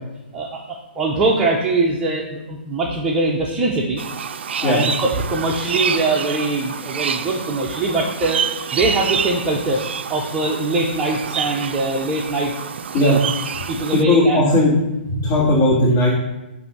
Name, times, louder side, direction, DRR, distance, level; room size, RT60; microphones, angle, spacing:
voice 1, 0.3-4.0 4.6-9.8 10.1-12.5 13.0-13.2 13.7-14.4, right 2 dB, 15° right, -3 dB, 0.7 m, -22 dB
sound 1, 4.0-14.0, right 7 dB, 75° right, 0.4 m, -28 dB
voice 2, 13.9-14.7 15.1-16.1, left 1 dB, 35° left, -9 dB, 2.0 m, -16 dB
8.1 x 2.7 x 5.9 m, 0.97 s
hypercardioid pair, 155°, 6 cm